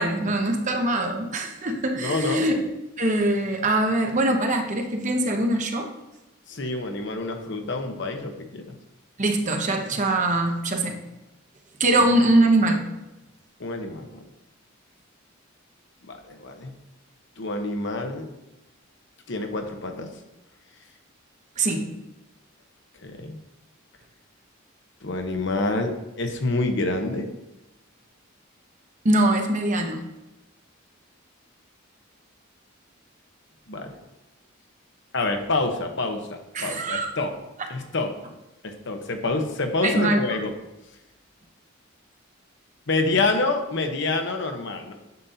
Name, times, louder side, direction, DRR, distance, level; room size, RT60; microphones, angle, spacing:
voice 1, 0.0-2.6 3.0-5.9 9.2-11.0 11.8-12.9 21.6-21.9 29.0-30.0 36.5-37.1 39.8-40.2, right 1 dB, 35° right, 4 dB, 0.9 m, -22 dB
voice 2, 2.0-2.6 6.5-8.7 12.0-12.1 13.6-14.2 16.1-16.7 17.4-18.3 19.3-20.1 23.0-23.4 25.0-27.3 33.7-33.9 35.1-37.3 37.7-38.1 38.6-40.5 42.9-44.9, left 2 dB, 60° left, 5 dB, 1.0 m, -27 dB
9.4 x 7.1 x 2.8 m, 0.97 s
head